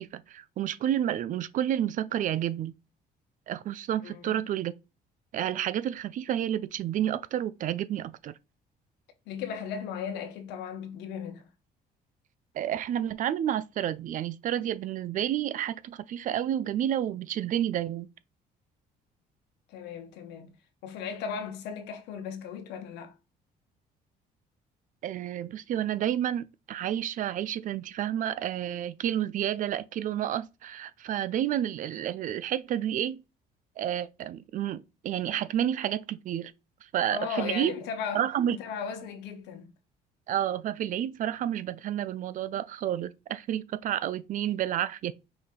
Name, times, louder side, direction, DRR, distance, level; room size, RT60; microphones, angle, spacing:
voice 1, 0.0-2.7 3.5-4.7 5.3-8.3 12.5-18.1 25.0-33.2 33.8-36.5 36.9-37.7 38.1-38.6 40.3-45.1, right 11 dB, 50° right, 0.4 m, -30 dB
voice 2, 4.0-4.4 9.3-11.4 19.7-20.6 20.8-23.1 37.1-39.7, left 6 dB, 85° left, 1.0 m, -36 dB
5.1 x 2.6 x 3.7 m
cardioid pair, 110°, 17 cm